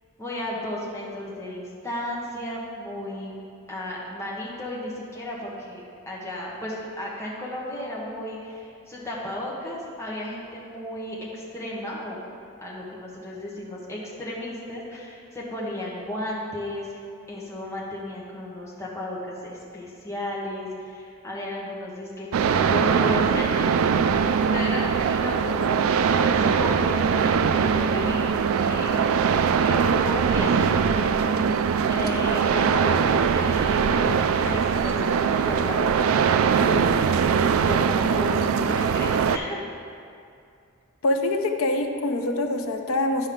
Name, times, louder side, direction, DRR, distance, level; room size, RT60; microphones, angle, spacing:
voice 1, 0.2-3.4 3.7-12.2 12.6-17.0 17.3-25.6 26.2-28.3 28.6-29.2 29.6-31.3 31.9-36.1 36.6-37.1 37.7-38.5 38.8-39.7, left 1 dB, 15° left, -6 dB, 1.1 m, -34 dB
sound 1, 22.3-39.4, right 6 dB, 80° right, 0.3 m, -22 dB
voice 2, 41.0-43.3, left 2 dB, 80° left, 4 dB, 0.6 m, -24 dB
10.0 x 5.4 x 3.7 m, 2.4 s
head